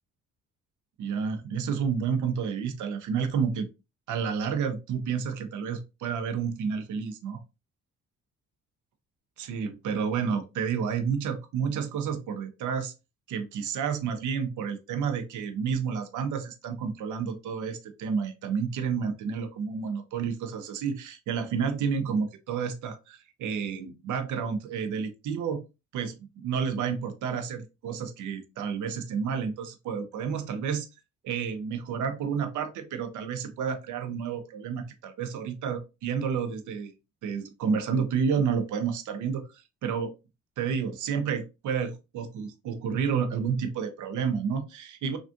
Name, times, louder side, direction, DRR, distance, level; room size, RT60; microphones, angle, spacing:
voice 1, 1.0-3.7 4.1-7.4 9.4-12.9 13.3-25.6 25.9-30.9 31.2-36.9 37.2-39.5 39.8-40.1 40.6-45.2, right 6 dB, 75° right, 9 dB, 0.7 m, -30 dB
3.4 x 2.4 x 2.5 m, 0.27 s
cardioid pair, 90°, 30 cm